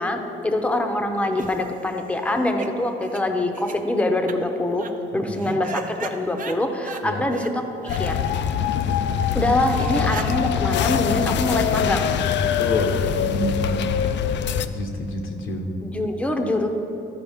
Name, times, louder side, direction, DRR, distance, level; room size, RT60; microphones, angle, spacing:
voice 1, 0.0-4.9 5.1-7.6 8.0-8.2 9.3-12.1 15.8-16.7, left 1 dB, 5° left, 5 dB, 0.7 m, -24 dB
sound 1, 1.1-2.7 3.0-3.2 3.5-3.7 4.3-4.4 4.7-4.9 5.3-7.0 7.3-7.5 7.8-8.0 8.3-8.4 8.7-8.8 9.0-9.1 9.4-9.5 9.6-11.8, right 5 dB, 45° right, 0.6 m, -37 dB
voice 2, 5.1-5.6 7.0-7.2 12.6-13.6 14.6-15.7, left 2 dB, 80° left, 3 dB, 1.1 m, -28 dB
sound 2, 7.9-14.7, left 8 dB, 65° left, 0.4 m, -23 dB
13.0 x 4.7 x 3.5 m, 3.0 s
cardioid pair, 90°, 20 cm